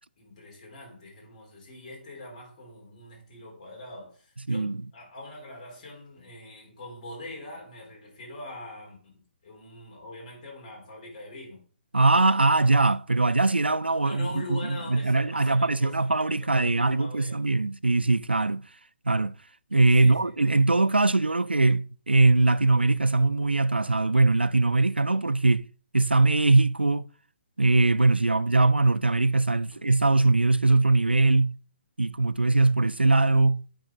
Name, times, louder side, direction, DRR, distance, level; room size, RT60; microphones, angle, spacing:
voice 1, 0.2-11.6 14.0-17.4 19.9-20.4, left 1 dB, 40° left, 3.7 m, -43 dB
voice 2, 4.5-4.8 11.9-18.7 19.1-19.3 19.7-25.7 25.9-27.1 27.6-31.6 32.0-33.6, right 3 dB, 85° right, 0.3 m, -21 dB
8.8 x 4.9 x 3.7 m
figure-of-eight pair, 135°, 6 cm